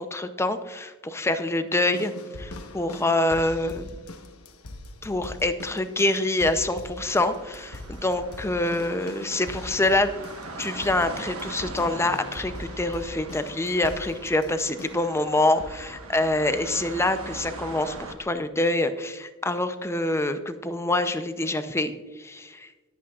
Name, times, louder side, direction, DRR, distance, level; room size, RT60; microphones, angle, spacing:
voice 1, 0.0-2.1 2.4-3.9 5.0-10.1 10.6-22.7, left 2 dB, 10° left, 9 dB, 0.6 m, -26 dB
sound 1, 1.9-15.2 15.6-16.0 16.7-16.8, left 1 dB, 90° left, 1.2 m, -42 dB
sound 2, 7.0-18.1, right 3 dB, 75° right, 1.4 m, -41 dB
21.0 x 8.6 x 2.4 m, 1.2 s
head